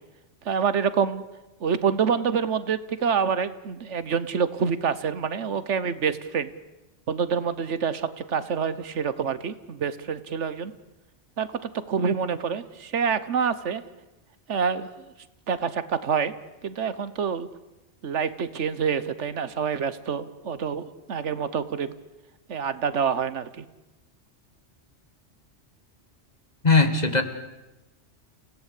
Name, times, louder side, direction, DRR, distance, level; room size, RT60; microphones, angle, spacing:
voice 1, 0.4-1.2 1.6-6.5 7.1-10.7 11.4-11.5 11.9-13.8 14.5-15.1 15.5-16.3 16.6-17.5 18.0-21.9 22.5-23.6, right 6 dB, 85° right, 14 dB, 1.4 m, -27 dB
voice 2, 26.6-27.2, left 3 dB, 35° left, 8 dB, 1.9 m, -19 dB
29.0 x 17.0 x 8.4 m, 1.0 s
omnidirectional pair, 1.2 m